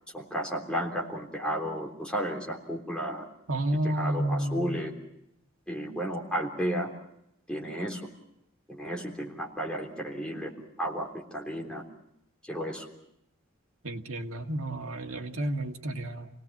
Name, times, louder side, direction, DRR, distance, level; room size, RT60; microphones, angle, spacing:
voice 1, 0.1-3.3 4.0-4.9 5.7-6.9 7.5-8.0 8.7-11.8 12.4-12.9, equal, 5° left, -1 dB, 3.5 m, -33 dB
voice 2, 3.5-4.9 13.8-16.3, right 1 dB, 85° right, 4 dB, 1.8 m, -31 dB
29.0 x 19.0 x 7.3 m, 0.81 s
head